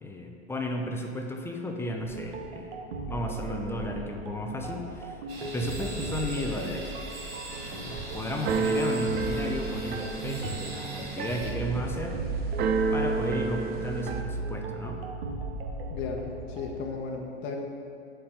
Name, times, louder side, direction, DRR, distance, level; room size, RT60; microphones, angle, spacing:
voice 1, 0.0-2.8 3.1-6.9 7.7-12.2 12.9-15.0, equal, 5° left, 2 dB, 0.7 m, -34 dB
sound 1, 2.0-16.9, right 3 dB, 60° right, 1.2 m, -37 dB
sound 2, 5.3-11.5, right 2 dB, 75° right, 2.0 m, -42 dB
Keyboard (musical), 7.5-14.2, right 4 dB, 30° right, 0.6 m, -31 dB
voice 2, 15.9-17.6, left 4 dB, 35° left, 0 dB, 1.1 m, -35 dB
8.4 x 4.6 x 6.8 m, 2.4 s
hypercardioid pair, 110°, 33 cm